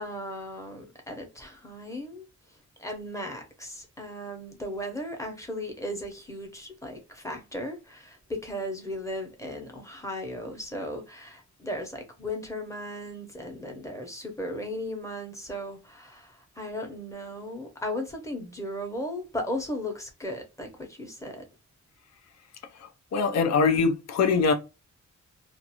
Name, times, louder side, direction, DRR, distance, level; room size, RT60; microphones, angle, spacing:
voice 1, 0.0-2.2 2.8-21.4, left 1 dB, 10° left, 0.8 m, -36 dB
voice 2, 23.1-24.5, left 5 dB, 60° left, 0.6 m, -22 dB
2.6 x 2.4 x 2.8 m
wide cardioid pair, 130°, 30 cm